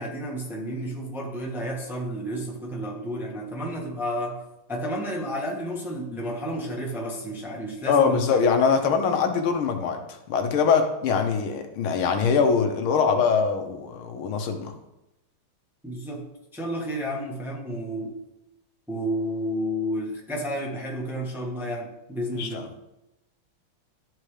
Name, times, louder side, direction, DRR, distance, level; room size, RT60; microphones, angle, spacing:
voice 1, 0.0-4.4 4.7-8.4 15.8-16.3 16.5-18.1 18.9-22.6, equal, ahead, -3 dB, 1.0 m, -31 dB
voice 2, 7.9-14.7 22.4-22.7, left 5 dB, 85° left, 6 dB, 1.7 m, -23 dB
12.5 x 4.4 x 3.3 m, 0.91 s
omnidirectional pair, 2.3 m